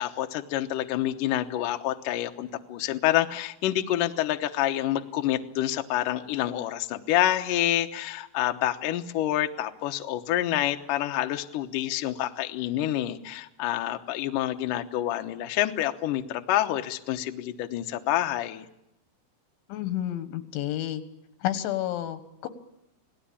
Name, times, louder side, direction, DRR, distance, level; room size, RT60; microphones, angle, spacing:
voice 1, 0.0-18.7, left 13 dB, 70° left, 6 dB, 2.1 m, -27 dB
voice 2, 19.7-21.0 21.4-22.5, left 12 dB, 90° left, 10 dB, 3.8 m, -30 dB
28.0 x 19.0 x 8.6 m, 0.85 s
omnidirectional pair, 5.2 m